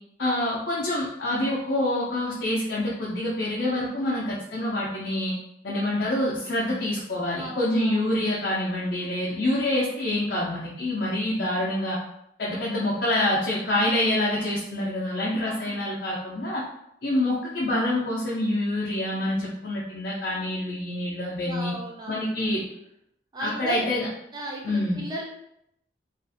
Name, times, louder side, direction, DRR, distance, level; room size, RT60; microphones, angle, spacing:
voice 1, 0.2-5.4 5.6-12.0 12.4-16.6 17.0-21.7 22.1-22.6 23.4-24.1 24.6-25.0, left 1 dB, 60° left, -6 dB, 0.5 m, -26 dB
voice 2, 7.3-8.1 15.4-15.8 21.4-22.5 23.3-23.9 24.3-25.2, right 2 dB, 20° right, -2 dB, 0.4 m, -36 dB
2.5 x 2.4 x 2.5 m, 0.78 s
head